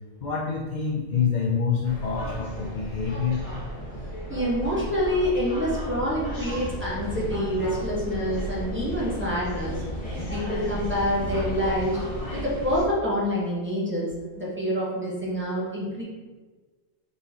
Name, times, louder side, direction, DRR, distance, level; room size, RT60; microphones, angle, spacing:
voice 1, 0.2-3.4, left 6 dB, 90° left, -2 dB, 0.4 m, -27 dB
sound 1, 1.8-12.8, equal, 30° left, 1.0 m, -34 dB
voice 2, 4.3-9.8 10.3-12.0 12.4-14.1 14.4-16.0, equal, 10° right, -8 dB, 1.0 m, -27 dB
4.1 x 3.8 x 2.9 m, 1.3 s
omnidirectional pair, 1.4 m